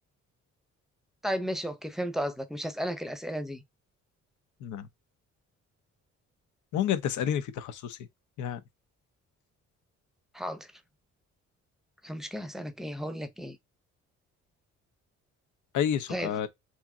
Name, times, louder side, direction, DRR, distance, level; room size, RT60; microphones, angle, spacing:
voice 1, 1.2-3.6 10.3-10.7 12.0-13.6 16.1-16.3, equal, ahead, 0.7 m, -34 dB
voice 2, 6.7-8.0 8.4-8.6 15.7-16.5, left 9 dB, 80° left, 0.8 m, -29 dB
3.5 x 2.9 x 3.6 m
cardioid pair, 90°, 30 cm